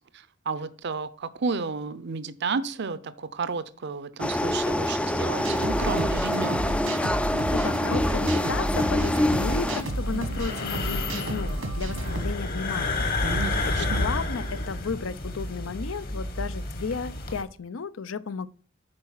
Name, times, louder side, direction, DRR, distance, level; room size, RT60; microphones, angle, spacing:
voice 1, 0.0-6.7 13.2-14.1, right 4 dB, 60° right, 0.6 m, -32 dB
sound 1, 4.2-9.8, left 1 dB, 5° left, 0.3 m, -26 dB
sound 2, 5.4-12.3, right 1 dB, 85° right, 1.4 m, -32 dB
voice 2, 7.3-13.4 13.7-18.5, left 5 dB, 85° left, 0.6 m, -34 dB
sound 3, 9.3-17.4, left 2 dB, 50° left, 1.4 m, -30 dB
8.8 x 4.8 x 5.6 m
head